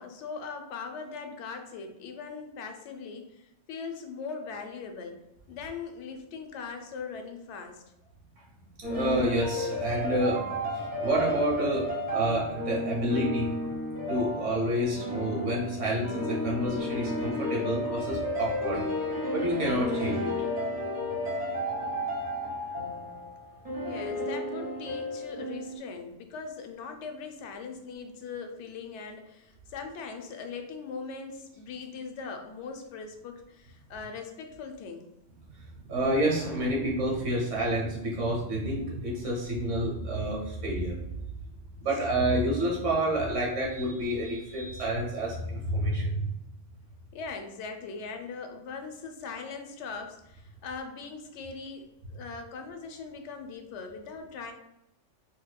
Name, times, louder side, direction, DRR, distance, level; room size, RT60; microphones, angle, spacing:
voice 1, 0.0-5.1 5.5-7.8 23.8-35.1 47.1-54.5, left 5 dB, 75° left, 5 dB, 0.9 m, -40 dB
sound 1, 8.8-25.8, left 1 dB, 10° right, 0.9 m, -32 dB
voice 2, 8.8-10.6 11.0-11.9 12.1-13.5 14.1-18.8 19.3-20.3 35.9-41.0 41.8-46.3, right 1 dB, 80° right, -3 dB, 1.4 m, -29 dB
4.4 x 2.6 x 2.2 m, 0.82 s
omnidirectional pair, 1.2 m